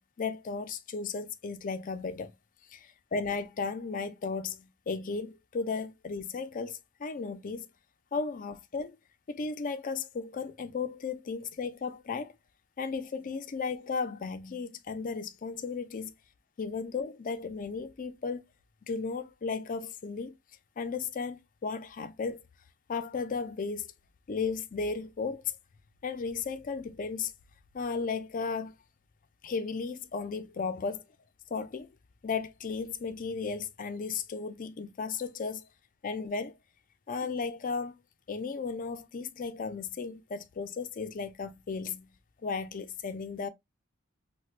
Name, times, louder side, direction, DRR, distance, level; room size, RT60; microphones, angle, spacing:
voice 1, 0.0-2.3 2.7-7.7 8.1-9.0 9.3-12.3 12.8-16.1 16.6-18.4 18.8-20.3 20.8-22.4 22.9-23.9 24.3-25.5 26.0-27.3 27.7-28.7 29.4-31.0 31.5-31.9 32.2-35.6 36.0-36.5 37.1-38.0 38.3-42.1 42.4-43.5, left 5 dB, 40° left, 0.4 m, -35 dB
4.4 x 2.1 x 2.4 m
head